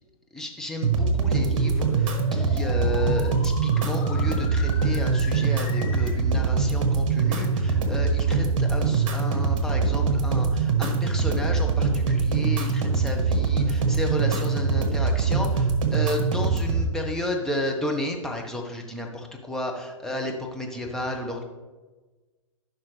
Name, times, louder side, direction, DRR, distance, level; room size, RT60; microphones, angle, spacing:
voice 1, 0.3-21.4, left 1 dB, 5° left, 0 dB, 1.3 m, -32 dB
sound 1, 0.8-16.8, right 4 dB, 60° right, 1.5 m, -23 dB
sound 2, 1.1-6.1, left 4 dB, 30° left, 1.7 m, -40 dB
14.0 x 6.0 x 3.4 m, 1.3 s
hypercardioid pair, 120°, 18 cm